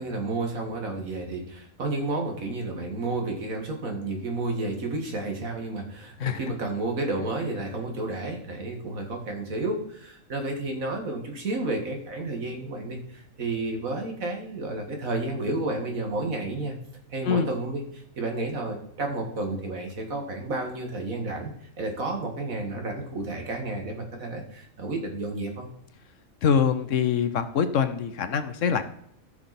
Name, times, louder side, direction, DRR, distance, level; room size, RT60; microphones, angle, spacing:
voice 1, 0.0-16.8 17.1-21.5 21.8-25.7, right 2 dB, 75° right, 3 dB, 2.3 m, -31 dB
voice 2, 26.4-28.9, left 7 dB, 65° left, 10 dB, 1.1 m, -24 dB
15.0 x 6.0 x 4.2 m, 0.72 s
omnidirectional pair, 1.4 m